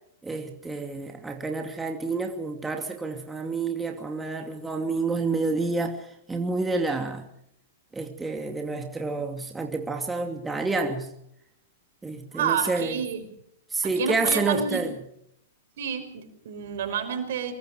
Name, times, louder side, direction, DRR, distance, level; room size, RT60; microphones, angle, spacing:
voice 1, 0.2-7.3 7.9-11.1 12.0-13.0 13.7-14.9, right 3 dB, 10° right, 2.7 m, -29 dB
voice 2, 12.3-13.3 13.8-14.9 15.8-17.5, right 7 dB, 65° right, 5.6 m, -29 dB
25.5 x 23.0 x 4.8 m
hypercardioid pair, 120°, 0 cm